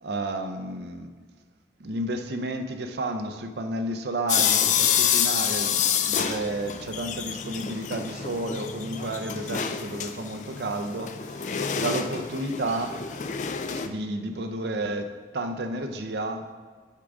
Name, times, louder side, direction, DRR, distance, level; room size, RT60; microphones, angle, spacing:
voice 1, 0.0-1.1 1.8-13.0 13.8-16.5, right 1 dB, 70° right, 6 dB, 0.6 m, -31 dB
sound 1, 4.3-13.9, left 8 dB, 45° left, 0.3 m, -27 dB
8.1 x 3.8 x 4.9 m, 1.5 s
head